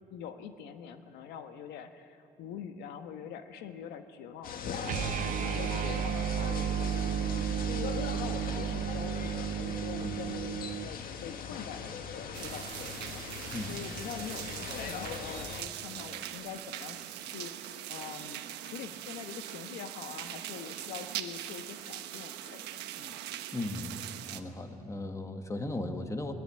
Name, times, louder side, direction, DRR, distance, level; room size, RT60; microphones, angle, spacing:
voice 1, 0.1-22.7 23.0-23.2, left 8 dB, 85° left, 8 dB, 1.3 m, -44 dB
sound 1, 4.4-15.6, left 6 dB, 60° left, 1.7 m, -40 dB
sound 2, 4.8-10.9, right 9 dB, 50° right, 0.5 m, -33 dB
sound 3, 12.3-24.4, right 12 dB, 85° right, 1.2 m, -41 dB
voice 2, 23.5-26.3, left 2 dB, 20° left, 6 dB, 1.8 m, -37 dB
21.0 x 20.5 x 8.8 m, 2.6 s
cardioid pair, 110°, 17 cm